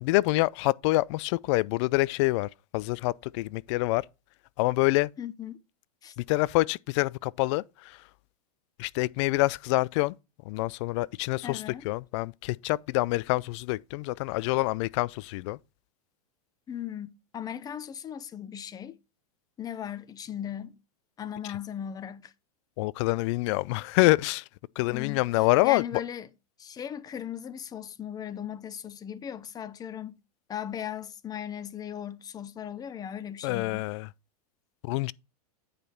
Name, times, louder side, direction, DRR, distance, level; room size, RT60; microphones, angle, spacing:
voice 1, 0.0-4.0 4.6-5.1 6.2-8.0 8.8-10.1 10.5-15.6 22.8-24.4 24.8-25.8 33.4-34.1 34.8-35.1, left 21 dB, 50° left, 0.4 m, -26 dB
voice 2, 5.2-5.6 6.0-6.2 11.4-11.9 16.7-19.0 19.6-20.8 21.2-22.3 24.9-26.3 26.6-30.2 30.5-33.9, left 9 dB, 20° left, 0.7 m, -38 dB
9.1 x 5.0 x 4.3 m
hypercardioid pair, 125°, 20 cm